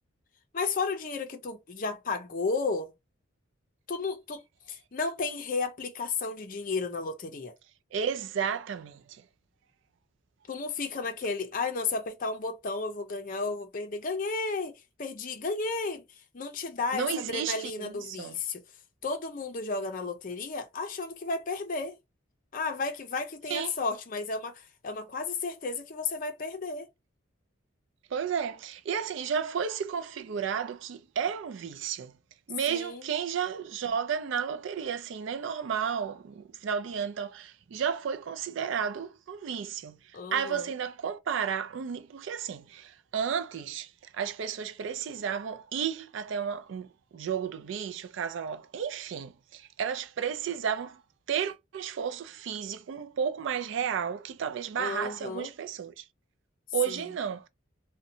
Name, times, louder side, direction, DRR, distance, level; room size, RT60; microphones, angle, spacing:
voice 1, 0.5-2.9 3.9-4.4 4.7-7.5 10.5-16.0 16.3-18.6 19.0-22.0 22.5-26.9 32.7-33.1 40.1-40.7 54.8-55.5 56.9-57.1, left 4 dB, 40° left, 0.5 m, -33 dB
voice 2, 7.9-9.0 16.9-18.3 23.5-23.7 28.1-32.1 32.5-40.0 40.3-43.9 44.1-46.9 47.1-51.0 51.3-56.0 56.7-57.5, right 7 dB, 65° right, 0.3 m, -32 dB
2.7 x 2.1 x 2.6 m
head